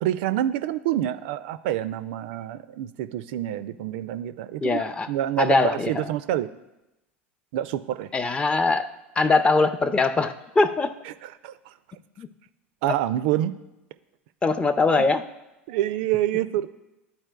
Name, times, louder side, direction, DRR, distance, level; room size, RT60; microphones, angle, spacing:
voice 1, 0.0-6.5 7.5-8.1 11.1-11.6 12.8-13.5 15.7-16.7, right 12 dB, 55° right, 12 dB, 0.3 m, -27 dB
voice 2, 4.6-5.1 5.4-6.1 8.1-8.9 9.2-10.9 12.2-12.3 14.4-15.2, left 3 dB, 15° left, 11 dB, 0.4 m, -22 dB
12.0 x 4.4 x 2.2 m, 0.94 s
figure-of-eight pair, 80°, 7 cm